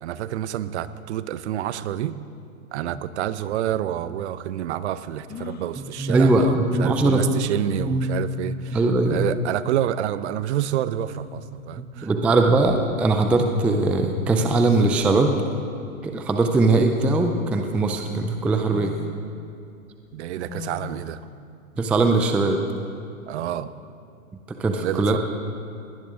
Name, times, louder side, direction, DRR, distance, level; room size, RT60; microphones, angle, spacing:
voice 1, 0.0-2.2 2.7-8.8 9.1-12.1 20.1-21.2 23.3-23.7 24.8-25.2, right 11 dB, 55° right, 14 dB, 0.8 m, -28 dB
sound 1, 5.3-5.8 7.3-7.4 7.8-8.2 9.6-9.8 10.9-11.6 12.3-13.3 14.0-14.1 14.2-15.1 16.7-17.3 17.8-17.9 18.7-19.2 20.5-21.1, left 5 dB, 25° left, 1.5 m, -40 dB
voice 2, 6.0-7.5 7.8-8.2 8.7-9.3 12.0-15.4 16.0-18.9 21.8-22.6 24.6-25.2, right 2 dB, 5° right, 5 dB, 0.4 m, -20 dB
21.5 x 18.0 x 3.7 m, 2.6 s
hypercardioid pair, 115°, 41 cm